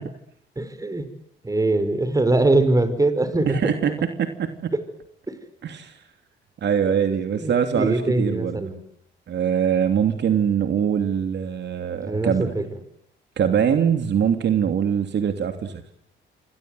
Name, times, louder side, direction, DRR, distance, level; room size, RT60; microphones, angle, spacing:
voice 1, 0.6-1.1 1.4-3.6 4.7-4.8 5.3-5.4 7.4-8.8 12.0-12.6, right 2 dB, 15° right, 12 dB, 5.3 m, -22 dB
voice 2, 3.5-3.9 4.2-4.7 5.6-6.0 6.6-8.6 9.3-12.5 13.4-15.8, right 8 dB, 60° right, 7 dB, 3.0 m, -23 dB
28.0 x 25.5 x 8.0 m, 0.71 s
cardioid pair, 90°, 20 cm